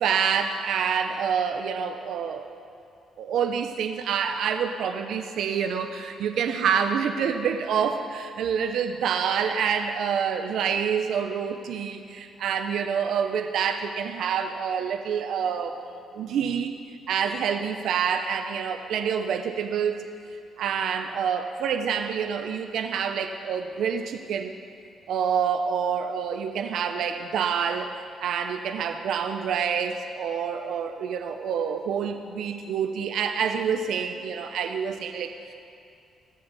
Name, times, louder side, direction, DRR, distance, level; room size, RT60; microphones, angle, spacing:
voice 1, 0.0-2.4 3.2-15.8 16.1-16.8 17.1-20.0 20.6-24.6 25.1-35.5, right 7 dB, 75° right, 7 dB, 0.7 m, -27 dB
20.5 x 15.0 x 4.1 m, 2.5 s
cardioid pair, 90°, 0 cm